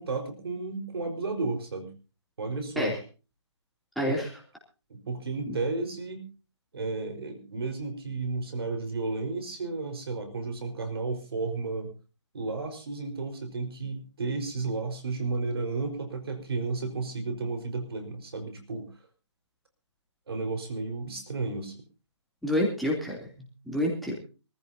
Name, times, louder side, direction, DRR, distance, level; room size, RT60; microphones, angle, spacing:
voice 1, 0.0-1.9 2.4-2.9 4.1-4.2 4.9-6.2 6.7-11.9 12.3-18.9 20.3-21.8, right 3 dB, 55° right, 5 dB, 4.7 m, -33 dB
voice 2, 3.9-4.3 22.4-23.2 23.6-24.1, left 1 dB, ahead, -4 dB, 3.1 m, -27 dB
24.5 x 15.0 x 2.8 m, 0.34 s
figure-of-eight pair, 145°, 15 cm